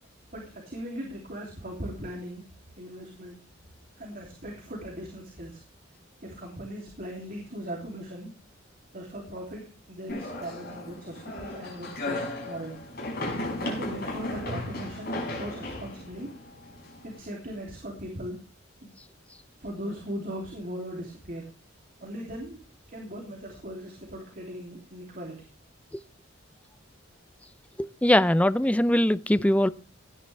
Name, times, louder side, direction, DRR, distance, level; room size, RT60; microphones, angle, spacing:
voice 1, 0.3-2.4 2.8-3.4 4.0-5.6 6.2-8.4 8.9-12.8 13.6-16.3 17.0-18.4 18.8-18.9 19.6-21.5 22.0-22.6 22.9-25.4, equal, 45° right, 3.0 m, -39 dB
sound 1, 10.1-17.2, left 2 dB, 50° left, 5.8 m, -35 dB
voice 2, 27.8-29.7, left 1 dB, 5° left, 0.5 m, -22 dB
16.5 x 10.5 x 3.4 m
head